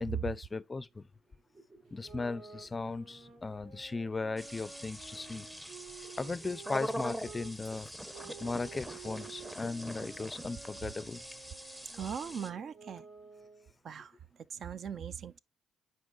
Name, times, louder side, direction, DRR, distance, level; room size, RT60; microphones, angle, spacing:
voice 1, 0.0-0.9 1.9-5.4 6.2-7.9 8.4-11.2, left 3 dB, 25° left, 0.4 m, -37 dB
sound 1, 1.3-12.1, right 2 dB, 30° right, 3.9 m, -61 dB
sound 2, 1.9-7.5 8.1-13.7, right 6 dB, 85° right, 3.8 m, -52 dB
sound 3, 4.4-12.5, equal, 10° right, 0.7 m, -43 dB
voice 2, 11.9-13.1 13.8-14.1 14.5-15.4, right 7 dB, 55° right, 0.4 m, -40 dB
9.4 x 4.5 x 2.4 m
cardioid pair, 90°, 0 cm